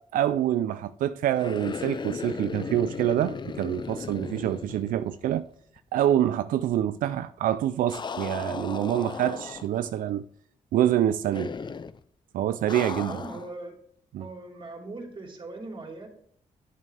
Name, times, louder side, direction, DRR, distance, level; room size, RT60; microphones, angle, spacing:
voice 1, 0.1-5.5 5.9-10.2 10.7-11.5 12.3-13.2 14.1-14.3, right 11 dB, 90° right, 0.4 m, -26 dB
sound 1, 1.3-5.5 5.8-5.9 7.9-9.9 11.3-12.0 12.7-13.5, left 5 dB, 35° left, 0.5 m, -36 dB
voice 2, 13.0-13.8 14.2-16.1, right 2 dB, 40° right, 2.9 m, -40 dB
11.0 x 7.2 x 3.3 m
cardioid pair, 75°, 14 cm